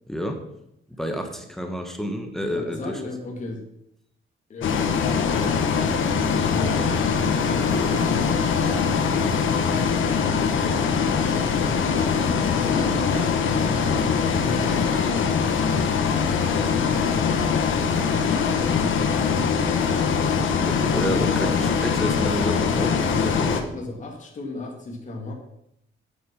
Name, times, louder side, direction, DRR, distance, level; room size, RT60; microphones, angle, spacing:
voice 1, 0.1-0.4 0.9-3.0 20.6-23.7, equal, ahead, 4 dB, 1.2 m, -30 dB
voice 2, 2.5-3.6 4.5-4.8 6.0-8.2 12.1-15.6 18.1-18.5 20.8-21.8 23.7-25.3, left 2 dB, 35° left, 0 dB, 2.1 m, -35 dB
Bus, 4.6-23.6, left 6 dB, 70° left, 1.4 m, -22 dB
9.4 x 8.7 x 5.9 m, 0.78 s
wide cardioid pair, 175°, 21 cm